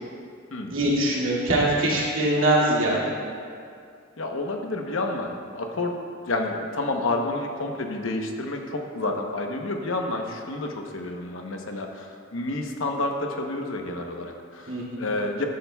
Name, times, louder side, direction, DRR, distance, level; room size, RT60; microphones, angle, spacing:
voice 1, 0.7-3.0 14.7-15.1, right 1 dB, 80° right, -6 dB, 2.4 m, -22 dB
voice 2, 4.2-5.9 6.3-15.4, left 2 dB, 75° left, 2 dB, 1.0 m, -29 dB
12.0 x 11.5 x 2.3 m, 2.3 s
head